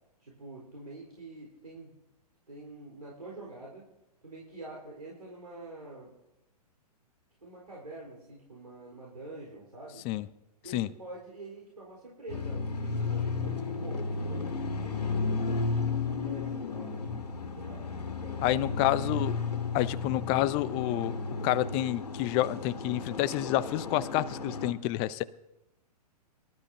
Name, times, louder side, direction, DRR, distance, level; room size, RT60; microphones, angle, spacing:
voice 1, 0.2-1.9 2.5-3.9 4.2-6.1 7.4-10.0 10.6-17.8 18.2-19.1, right 2 dB, 85° right, -4 dB, 4.2 m, -46 dB
sound 1, 12.3-24.7, left 4 dB, 75° left, 1.9 m, -33 dB
voice 2, 18.4-19.3 19.7-21.2 21.4-25.2, left 15 dB, 25° left, 16 dB, 0.5 m, -29 dB
24.5 x 12.5 x 2.8 m, 0.97 s
figure-of-eight pair, 115°, 21 cm